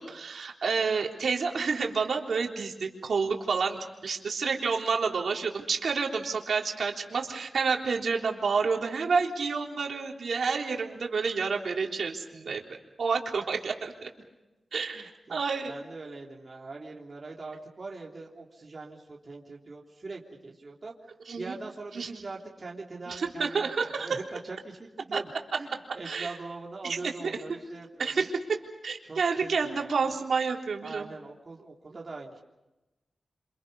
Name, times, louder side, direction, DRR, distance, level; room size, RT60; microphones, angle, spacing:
voice 1, 0.0-14.1 14.7-15.7 21.3-21.6 21.9-22.1 23.1-24.2 25.1-25.2 26.1-26.3 26.9-27.0 27.2-27.4 28.0-28.6 28.8-31.1, right 5 dB, 70° right, 1 dB, 3.7 m, -29 dB
voice 2, 14.9-15.4 15.7-20.9 21.4-25.3 25.6-28.3 29.0-30.1 30.8-32.4, right 3 dB, 40° right, -1 dB, 3.3 m, -42 dB
28.0 x 27.0 x 5.5 m, 1.0 s
wide cardioid pair, 110°, 0 cm